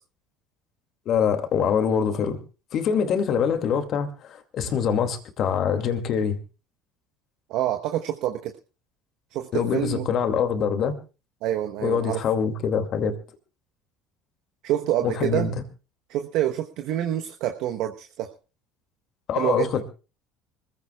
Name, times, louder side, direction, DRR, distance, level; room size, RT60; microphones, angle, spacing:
voice 1, 1.1-2.4 2.7-6.4 9.5-11.0 11.8-13.2 15.0-15.6 19.3-19.8, left 7 dB, 55° left, 2.4 m, -24 dB
voice 2, 7.5-8.5 9.3-10.1 11.4-12.2 14.6-15.5 16.1-18.3 19.4-19.7, right 12 dB, 65° right, 1.1 m, -27 dB
25.5 x 15.5 x 2.4 m
hypercardioid pair, 75°, 0 cm